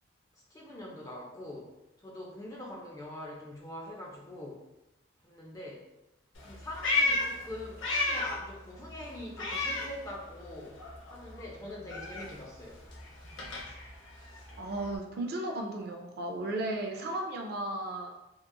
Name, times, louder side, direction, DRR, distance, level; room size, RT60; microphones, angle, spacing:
voice 1, 0.5-1.7 2.0-4.6 5.2-5.8 6.4-10.8 11.1-12.8, left 1 dB, 15° left, -3 dB, 0.4 m, -43 dB
Meow, 6.4-8.5 8.8-10.5 10.8-15.0, left 2 dB, 75° left, 0.6 m, -33 dB
voice 2, 14.6-18.1, right 1 dB, 50° right, 2 dB, 0.3 m, -35 dB
2.8 x 2.3 x 2.2 m, 0.96 s
head